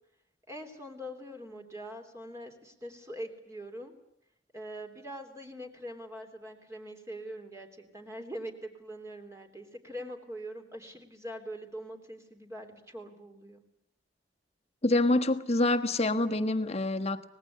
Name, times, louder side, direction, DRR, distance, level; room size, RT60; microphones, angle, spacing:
voice 1, 0.5-4.0 4.5-13.6, equal, 15° right, 4 dB, 3.3 m, -43 dB
voice 2, 14.8-17.3, left 2 dB, 35° left, 8 dB, 1.5 m, -26 dB
25.0 x 20.0 x 8.4 m, 0.75 s
head